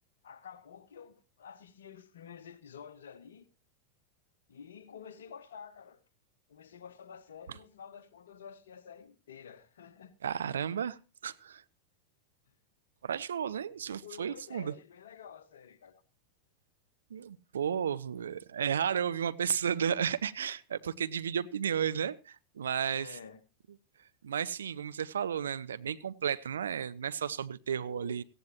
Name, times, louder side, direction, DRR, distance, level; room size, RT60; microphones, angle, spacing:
voice 1, 0.2-3.5 4.5-6.0 6.5-10.1 13.7-16.0 23.0-23.4 27.7-28.2, left 7 dB, 65° left, 1.2 m, -50 dB
voice 2, 10.2-11.6 13.0-14.7 17.1-23.2 24.2-28.2, right 8 dB, 65° right, 0.6 m, -33 dB
18.0 x 15.0 x 3.0 m
figure-of-eight pair, 90°, 0 cm